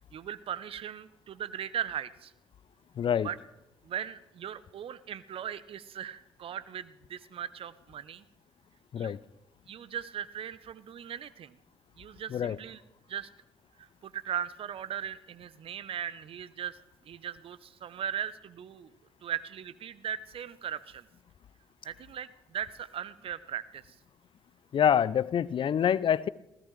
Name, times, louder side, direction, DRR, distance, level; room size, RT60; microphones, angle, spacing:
voice 1, 0.1-2.3 3.2-3.4 3.8-8.2 8.9-9.2 9.7-11.6 12.0-12.8 13.1-13.3 13.8-16.8 17.0-21.1 21.8-24.0, right 9 dB, 50° right, 0.8 m, -38 dB
voice 2, 3.0-3.3 8.9-9.2 12.3-12.6 24.7-26.3, left 8 dB, 45° left, 0.5 m, -26 dB
26.5 x 16.5 x 3.3 m
hypercardioid pair, 45°, 12 cm